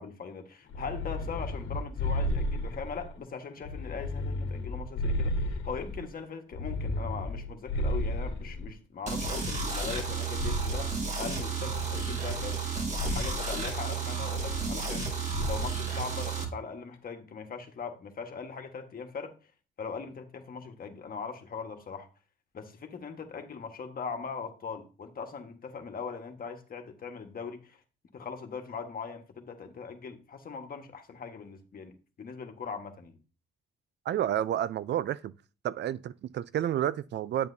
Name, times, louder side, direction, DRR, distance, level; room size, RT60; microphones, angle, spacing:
voice 1, 0.0-12.6 13.0-19.3 19.8-22.1 22.5-27.8 28.1-33.2, left 5 dB, 45° left, 1.5 m, -40 dB
sound 1, 0.7-3.1 3.6-6.1 6.5-8.7 9.2-11.1 11.7-12.7 12.9-13.4 14.3-15.0 15.3-15.8, left 1 dB, 80° left, 1.3 m, -33 dB
sound 2, 9.1-16.4, right 5 dB, 35° right, 2.1 m, -33 dB
voice 2, 34.1-35.3 35.6-37.5, right 11 dB, 60° right, 0.5 m, -30 dB
8.7 x 8.1 x 2.7 m
cardioid pair, 90°, 20 cm